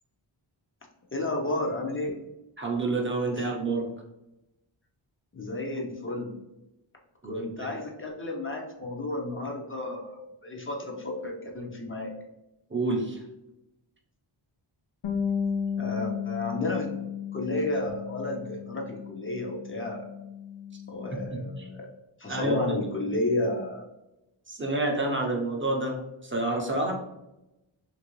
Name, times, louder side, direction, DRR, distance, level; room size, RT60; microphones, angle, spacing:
voice 1, 1.1-2.2 5.3-6.3 7.2-12.1 15.7-16.9 17.3-20.1 20.9-21.9 22.2-23.9, left 2 dB, 25° left, 0 dB, 0.6 m, -32 dB
voice 2, 2.6-3.9 7.2-7.7 12.7-13.3 21.1-21.7 22.3-22.6 24.5-26.9, right 2 dB, 25° right, 0 dB, 0.6 m, -29 dB
Bass guitar, 15.0-21.3, left 7 dB, 85° left, 0.6 m, -34 dB
3.0 x 2.6 x 3.0 m, 0.93 s
wide cardioid pair, 90°, 49 cm